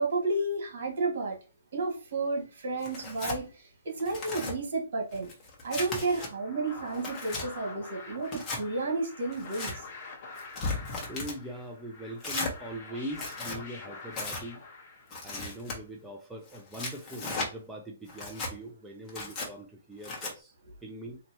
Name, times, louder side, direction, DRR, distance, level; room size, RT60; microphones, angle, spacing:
voice 1, 0.0-1.4 1.7-5.3 5.6-9.7, right 3 dB, 65° right, 1.9 m, -31 dB
Tearing, 2.8-3.4 3.9-4.5 5.1-6.3 6.8-7.5 8.2-8.6 9.3-9.7 10.4-11.4 12.2-12.5 13.1-13.6 14.1-14.4 15.1-15.8 16.5-17.5 18.1-18.5 19.1-19.5 20.0-20.3, left 3 dB, 20° left, 1.3 m, -36 dB
sound 1, 6.1-15.5, left 3 dB, 40° left, 1.3 m, -46 dB
voice 2, 11.1-14.6 15.2-20.5 20.8-21.2, right 1 dB, 5° right, 0.6 m, -41 dB
4.1 x 2.9 x 3.0 m
hypercardioid pair, 150°, 0 cm